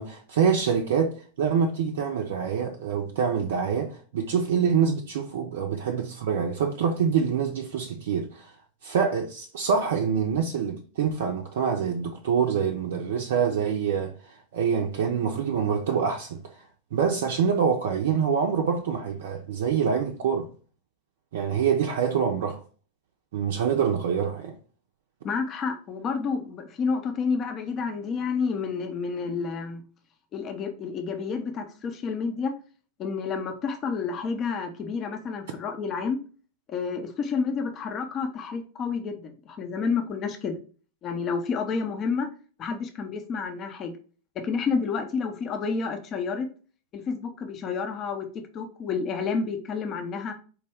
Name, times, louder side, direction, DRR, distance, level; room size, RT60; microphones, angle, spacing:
voice 1, 0.0-8.5 8.8-16.6 16.9-20.5 21.3-22.6 23.3-24.6, right 7 dB, 55° right, 0.5 m, -26 dB
voice 2, 25.2-29.8 30.3-32.5 33.0-36.2 36.7-40.6 41.0-42.3 42.6-44.0 44.4-46.5 46.9-48.3 48.5-50.3, left 5 dB, 30° left, 0.6 m, -30 dB
4.4 x 2.2 x 3.4 m
figure-of-eight pair, 90°, 0 cm